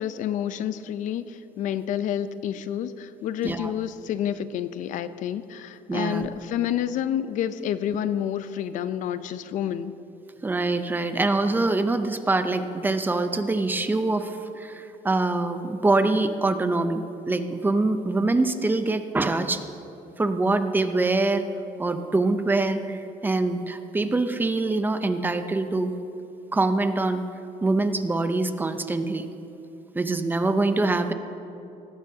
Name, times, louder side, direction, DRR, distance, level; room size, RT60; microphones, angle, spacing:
voice 1, 0.0-9.9, left 10 dB, 65° left, 13 dB, 0.6 m, -29 dB
voice 2, 5.9-6.3 10.4-19.6 20.2-21.4 21.8-25.9 26.5-27.2 27.6-29.2 29.9-31.1, right 2 dB, 15° right, 9 dB, 0.7 m, -24 dB
18.5 x 15.5 x 2.8 m, 2.8 s
cardioid pair, 135°, 14 cm